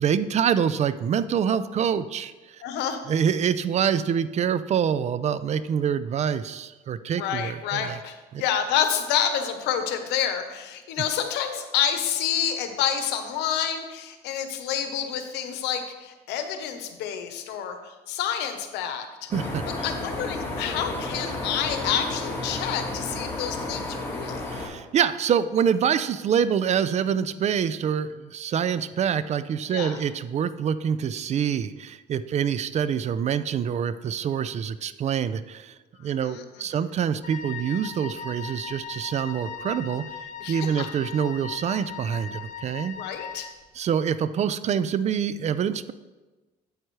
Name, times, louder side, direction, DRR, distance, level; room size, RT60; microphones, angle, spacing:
voice 1, 0.0-2.6 3.1-7.9 8.3-8.4 19.3-19.6 24.5-35.7 36.0-43.0 43.7-45.9, right 8 dB, 40° right, 14 dB, 0.4 m, -26 dB
voice 2, 2.6-3.0 7.2-19.3 19.7-24.4 29.7-30.0 36.0-36.8 40.4-40.9 43.0-43.5, left 9 dB, 90° left, 7 dB, 0.9 m, -29 dB
sound 1, 19.3-24.7, left 2 dB, 15° left, 2.0 m, -32 dB
Wind instrument woodwind instrument, 37.2-43.6, left 7 dB, 50° left, 1.0 m, -38 dB
8.8 x 7.9 x 3.2 m, 1.2 s
cardioid pair, 110°, 17 cm